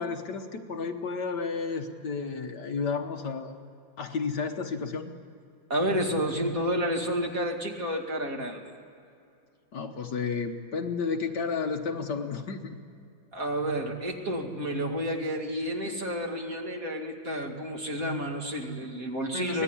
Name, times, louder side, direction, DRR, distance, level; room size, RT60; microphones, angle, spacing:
voice 1, 0.0-3.5 4.0-5.1 9.7-12.8 18.8-18.9 19.3-19.6, left 5 dB, 60° left, 5 dB, 1.6 m, -32 dB
voice 2, 5.7-8.6 13.3-19.6, equal, 40° right, 1 dB, 2.7 m, -30 dB
24.5 x 19.0 x 9.9 m, 2.5 s
omnidirectional pair, 2.3 m